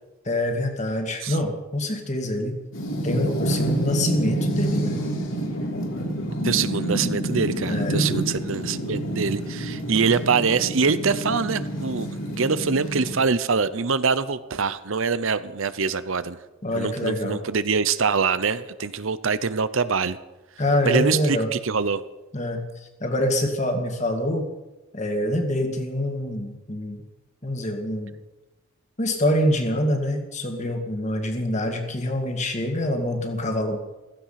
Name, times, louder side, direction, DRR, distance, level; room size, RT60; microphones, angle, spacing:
voice 1, 0.2-2.6 3.0-5.0 7.7-8.0 16.6-17.4 20.6-21.5 22.3-24.5 24.9-27.0 27.4-28.1 29.0-33.8, left 1 dB, 35° left, 4 dB, 2.3 m, -25 dB
sound 1, 2.7-13.2, right 1 dB, 65° left, 3.5 m, -28 dB
voice 2, 6.4-16.4 16.7-20.2 20.8-22.0, right 5 dB, 65° right, 14 dB, 0.8 m, -24 dB
16.0 x 15.5 x 5.9 m, 1.1 s
head